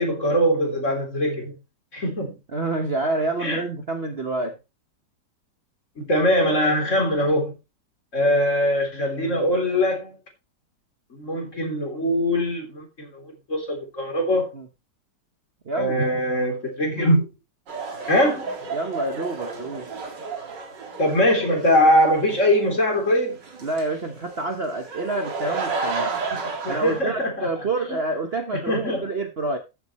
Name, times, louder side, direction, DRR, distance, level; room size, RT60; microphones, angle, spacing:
voice 1, 0.0-1.6 1.9-2.3 3.4-3.6 6.0-7.6 8.1-10.2 11.1-14.5 15.7-17.3 18.1-18.5 21.0-23.4 26.3-26.4 26.6-27.5 27.9-28.0 28.5-29.0, equal, 45° left, 3.7 m, -22 dB
voice 2, 2.5-4.6 14.5-14.7 15.6-16.0 18.7-19.9 23.6-26.1 26.7-29.6, right 2 dB, 40° right, 1.2 m, -28 dB
sound 1, 17.7-27.0, right 4 dB, 80° right, 2.8 m, -32 dB
14.0 x 7.5 x 3.1 m
omnidirectional pair, 1.9 m